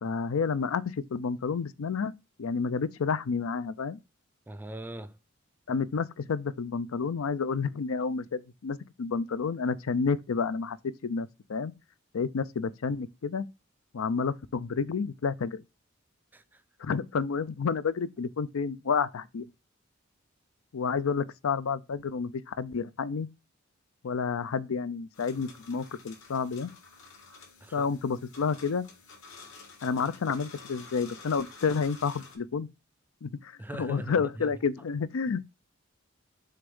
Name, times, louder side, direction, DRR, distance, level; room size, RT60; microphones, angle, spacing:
voice 1, 0.0-0.8 1.1-2.1 2.4-4.0 5.7-10.8 11.0-11.7 12.1-13.5 13.9-15.6 16.8-19.5 20.7-23.3 24.0-26.7 27.7-28.9 29.8-32.7 33.2-35.5, left 5 dB, 85° left, 0.5 m, -30 dB
voice 2, 4.5-5.1 16.3-16.4 27.6-27.9 33.6-34.5, right 1 dB, 10° right, 0.4 m, -41 dB
sound 1, 25.1-32.4, left 4 dB, 70° left, 2.3 m, -50 dB
6.7 x 3.5 x 5.3 m
head